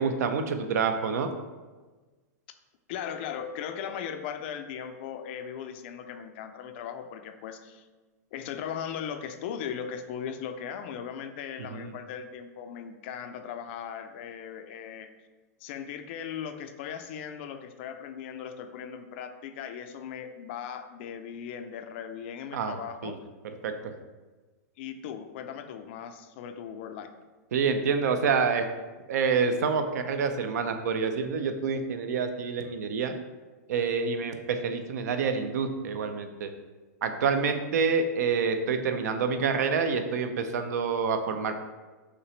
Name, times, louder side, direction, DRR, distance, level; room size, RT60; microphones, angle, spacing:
voice 1, 0.0-1.3 11.6-11.9 22.5-23.2 23.6-23.9 27.5-28.7 29.1-33.2 33.7-36.5 37.0-41.6, right 5 dB, 70° right, 8 dB, 0.5 m, -27 dB
voice 2, 2.9-7.9 8.3-15.1 15.6-23.2 24.8-27.1, left 8 dB, 40° left, 8 dB, 0.4 m, -38 dB
5.8 x 2.9 x 3.1 m, 1.3 s
supercardioid pair, 155°, 9 cm